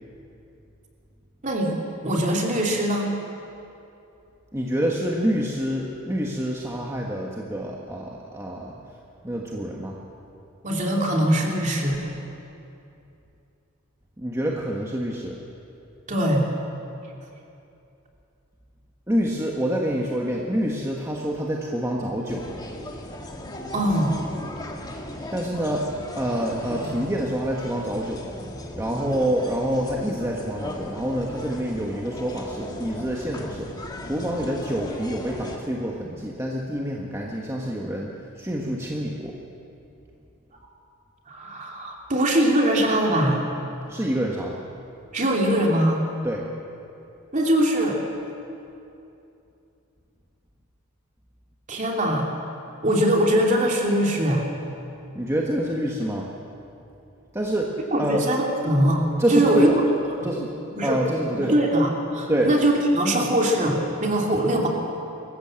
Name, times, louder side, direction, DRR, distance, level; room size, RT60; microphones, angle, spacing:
voice 1, 1.4-1.7 2.0-3.1 10.6-12.1 16.1-16.5 23.7-24.2 41.3-43.4 45.1-46.0 47.3-48.0 51.7-52.3 52.8-54.4 57.9-59.7 60.2-60.3 60.7-61.0 61.4-64.7, right 1 dB, 35° right, 0 dB, 2.9 m, -22 dB
voice 2, 4.5-8.8 9.2-10.0 14.2-15.4 19.1-22.4 25.3-25.9 26.1-28.2 28.7-33.7 34.0-38.1 38.4-39.3 43.9-44.6 46.2-46.4 55.1-56.3 57.3-57.7 58.0-58.2 59.2-59.8 60.2-60.5 60.8-61.5 62.3-62.5, right 1 dB, 15° right, -2 dB, 1.4 m, -27 dB
sound 1, 22.3-35.6, left 1 dB, 20° left, 1.7 m, -37 dB
25.0 x 14.5 x 7.6 m, 2.8 s
head